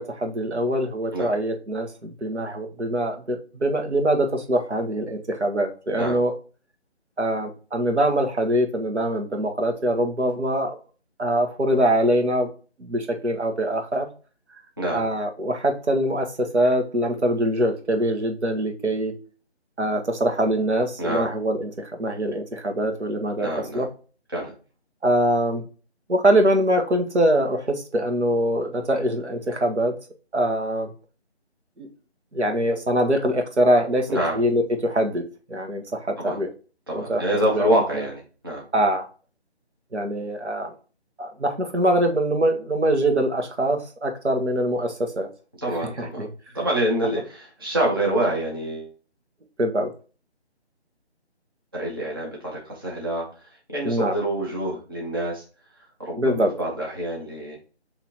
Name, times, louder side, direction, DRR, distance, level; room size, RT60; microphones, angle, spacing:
voice 1, 0.0-6.3 7.2-10.8 11.2-12.5 12.8-14.1 14.9-19.1 19.8-23.5 23.7-23.9 25.0-25.6 26.1-29.9 30.3-30.9 31.8-31.9 32.3-34.1 34.3-36.5 36.9-37.2 37.5-37.7 38.0-38.1 38.7-39.0 39.9-40.7 41.2-45.3 46.0-46.3 49.6-49.9 53.8-54.2 56.2-56.5, right 1 dB, 85° right, 4 dB, 1.2 m, -23 dB
voice 2, 21.0-21.3 23.4-23.9 24.3-24.5 34.1-34.4 36.2-36.4 36.9-38.6 45.6-46.3 46.5-48.9 51.7-55.4 56.0-57.6, right 1 dB, 20° right, -3 dB, 0.7 m, -26 dB
6.1 x 2.8 x 2.8 m, 0.37 s
figure-of-eight pair, 160°, 34 cm